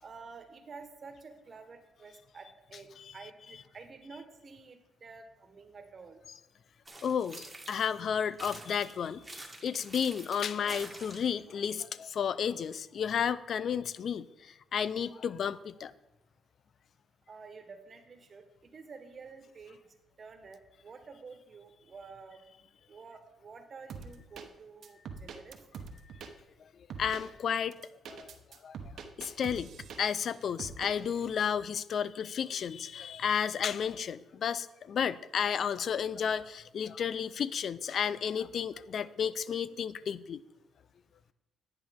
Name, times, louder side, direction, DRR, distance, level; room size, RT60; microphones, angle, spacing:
voice 1, 0.0-6.2 17.3-19.8 20.2-22.4 22.9-25.6, right 4 dB, 40° right, 6 dB, 1.4 m, -50 dB
sound 1, 6.9-8.0 8.4-11.4, right 2 dB, 10° right, 1.7 m, -47 dB
voice 2, 7.0-15.9 26.2-26.3 27.0-27.8 28.1-28.4 28.6-28.8 29.2-29.7 30.0-40.4, left 7 dB, 60° left, 17 dB, 0.4 m, -32 dB
sound 2, 23.9-24.5 24.8-26.3 26.9-27.2 27.7-30.3 30.6-30.9, right 5 dB, 65° right, 1.0 m, -44 dB
10.5 x 8.7 x 3.7 m, 0.95 s
cardioid pair, 90°, 0 cm